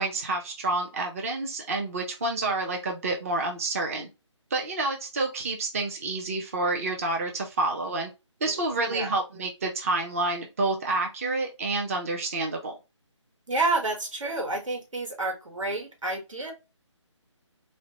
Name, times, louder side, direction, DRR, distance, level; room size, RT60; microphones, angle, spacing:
voice 1, 0.0-4.1 4.5-8.1 8.4-12.8, right 2 dB, 30° right, 0.5 m, -29 dB
voice 2, 8.5-9.1 13.5-16.5, right 2 dB, 80° right, 1.4 m, -30 dB
4.1 x 2.0 x 2.9 m
figure-of-eight pair, 160°, 16 cm